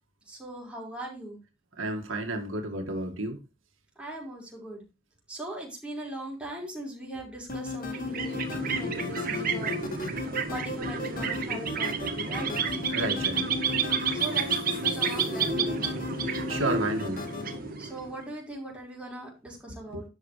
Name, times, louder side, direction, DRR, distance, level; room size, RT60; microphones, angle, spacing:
voice 1, 0.3-1.4 4.0-4.8 5.3-10.2 10.5-12.5 14.1-15.9 17.8-20.1, right 1 dB, 5° right, 5.2 m, -40 dB
voice 2, 1.8-3.4 12.9-13.5 16.2-17.2 19.9-20.0, right 2 dB, 85° right, 2.1 m, -31 dB
sound 1, 7.5-17.6, left 3 dB, 45° left, 2.0 m, -35 dB
sound 2, 7.8-18.2, right 5 dB, 50° right, 1.8 m, -31 dB
12.0 x 9.0 x 3.3 m
head